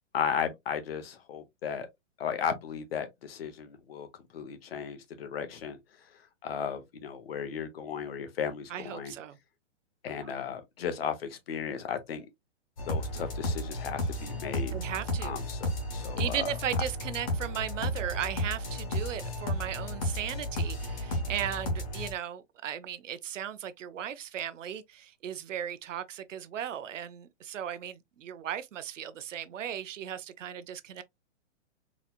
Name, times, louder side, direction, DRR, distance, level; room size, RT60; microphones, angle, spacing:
voice 1, 0.1-1.9 2.2-4.1 4.3-5.8 6.1-9.1 10.0-12.3 12.9-14.7 15.2-16.5, left 7 dB, 55° left, 0.9 m, -35 dB
voice 2, 8.7-9.4 14.7-15.4 16.2-31.0, right 9 dB, 85° right, 0.7 m, -36 dB
sound 1, 12.8-22.1, left 1 dB, 30° left, 1.0 m, -33 dB
4.0 x 2.9 x 2.3 m
hypercardioid pair, 170°, 37 cm